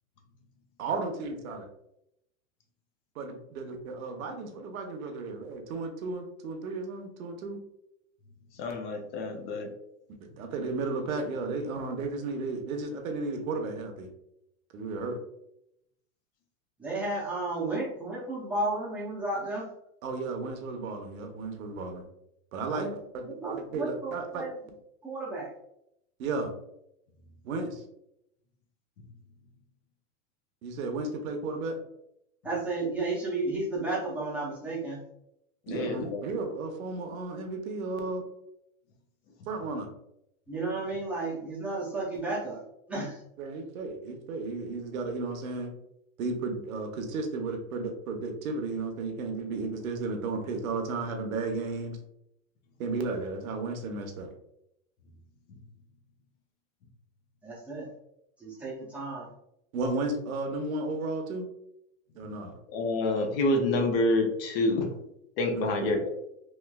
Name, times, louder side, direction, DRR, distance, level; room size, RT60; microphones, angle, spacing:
voice 1, 0.8-1.7 3.1-7.6 10.4-14.1 14.7-15.2 20.0-22.0 22.5-24.5 26.2-26.5 27.4-27.8 30.6-31.8 35.7-38.2 39.5-39.9 43.4-45.7 46.2-52.0 52.8-54.3 59.7-61.5 62.1-62.6 65.5-65.9, right 3 dB, 85° right, 4 dB, 0.9 m, -34 dB
voice 2, 8.6-9.7 35.7-36.2 62.7-64.9 65.4-66.1, left 2 dB, 45° left, 3 dB, 0.7 m, -27 dB
voice 3, 16.8-19.7 22.7-22.9 23.2-24.5 25.0-25.5 32.4-35.0 40.5-42.6 42.9-43.2 57.4-57.9 58.4-59.3, right 2 dB, 5° right, -7 dB, 0.5 m, -33 dB
3.1 x 3.0 x 2.2 m, 0.79 s
supercardioid pair, 160°, 40 cm